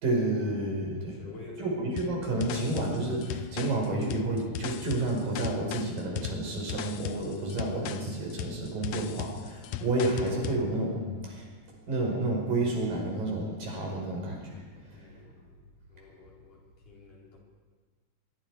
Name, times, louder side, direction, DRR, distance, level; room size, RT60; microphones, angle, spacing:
voice 1, 0.0-1.2 1.6-11.5 11.9-14.6 14.9-15.2, right 2 dB, 75° right, 0 dB, 6.8 m, -30 dB
voice 2, 1.1-1.8 14.9-17.4, left 3 dB, 65° left, -3 dB, 6.3 m, -49 dB
sound 1, 2.0-10.6, left 12 dB, 85° left, 1.4 m, -38 dB
24.0 x 23.0 x 4.9 m, 1.5 s
omnidirectional pair, 4.0 m